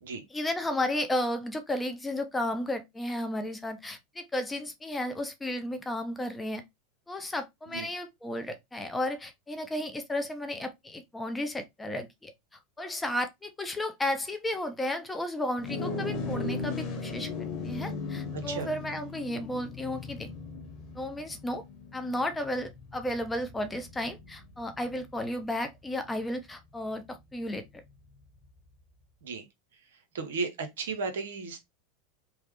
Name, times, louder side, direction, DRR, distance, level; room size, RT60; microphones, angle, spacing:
voice 1, 0.3-6.6 7.1-12.3 12.8-20.3 20.9-21.6 21.9-27.6, left 1 dB, 10° left, 0.6 m, -33 dB
sound 1, 15.6-25.2, left 3 dB, 45° left, 1.0 m, -37 dB
voice 2, 30.1-31.6, right 4 dB, 75° right, 0.7 m, -34 dB
3.1 x 2.0 x 3.0 m
hypercardioid pair, 90°, 0 cm